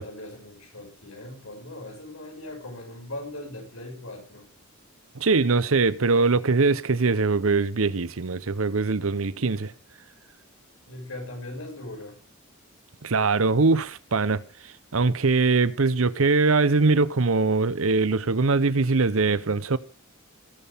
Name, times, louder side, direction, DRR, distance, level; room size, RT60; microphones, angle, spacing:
voice 1, 0.0-4.5 10.9-12.2, left 1 dB, 75° left, 6.2 m, -39 dB
voice 2, 5.1-9.7 13.0-14.4 14.9-19.8, right 3 dB, 70° right, 0.8 m, -22 dB
19.5 x 8.5 x 3.5 m
head